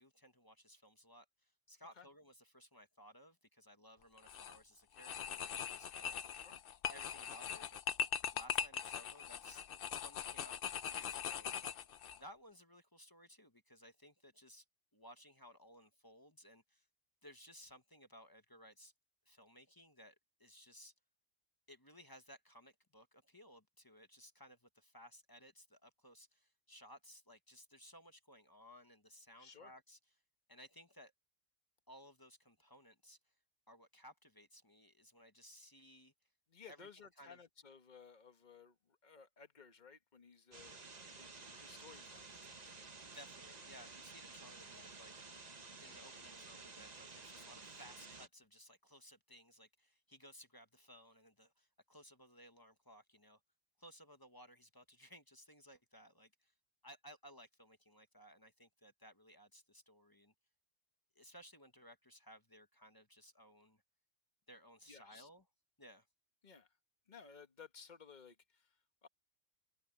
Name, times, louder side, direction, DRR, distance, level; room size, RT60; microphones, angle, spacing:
voice 1, 0.0-6.2 6.9-7.8 8.3-9.6 9.9-11.5 12.1-14.6 14.9-16.9 17.2-18.9 19.3-20.1 20.4-20.9 21.7-30.0 30.5-31.1 31.9-33.2 33.7-36.1 36.7-37.4 43.1-45.4 45.8-53.4 53.8-56.5 56.8-60.3 61.1-63.8 64.5-65.4 65.8-66.1, equal, 15° left, 1.2 m, -59 dB
sound 1, 4.2-4.6 5.0-12.2, left 7 dB, 55° left, 0.7 m, -41 dB
voice 2, 29.4-29.7 36.5-40.8 41.1-42.6 64.9-65.3 66.4-66.7 67.1-68.7 69.0-69.1, left 6 dB, 35° left, 1.5 m, -58 dB
sound 2, 40.5-48.3, right 4 dB, 30° right, 1.3 m, -53 dB
omnidirectional pair, 1.4 m